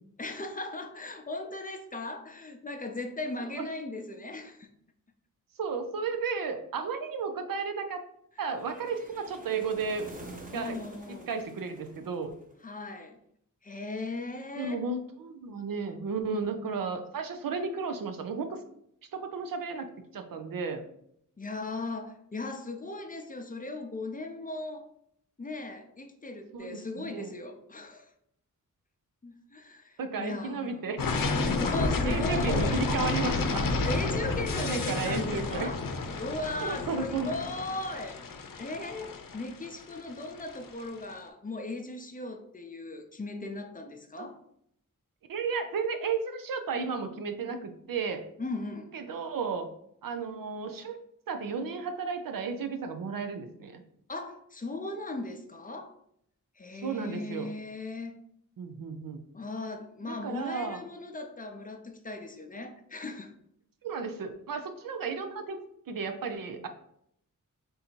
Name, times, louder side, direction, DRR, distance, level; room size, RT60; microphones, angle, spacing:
voice 1, 0.2-4.7 10.5-11.3 12.6-13.2 13.6-14.8 16.4-16.5 21.4-24.8 25.4-28.1 29.2-30.8 31.4-32.8 33.8-35.8 36.2-38.2 38.6-44.4 48.4-48.9 54.1-55.9 56.6-58.2 59.3-63.3, left 2 dB, 25° left, 4 dB, 0.5 m, -38 dB
voice 2, 5.6-8.0 8.4-10.1 10.5-12.3 14.6-18.6 19.1-20.8 26.5-27.4 30.0-31.0 32.0-33.7 34.5-35.8 36.6-37.3 44.2-44.3 45.3-48.3 48.9-49.7 50.0-51.0 51.3-53.8 56.8-57.5 58.6-59.3 60.0-60.8 63.8-65.6 65.9-66.7, right 5 dB, 90° right, 7 dB, 0.6 m, -33 dB
sound 1, 8.5-12.7, right 2 dB, 25° right, 0.7 m, -48 dB
sound 2, 31.0-40.8, left 3 dB, 80° left, 0.6 m, -30 dB
3.8 x 2.7 x 4.3 m, 0.72 s
wide cardioid pair, 105°, 33 cm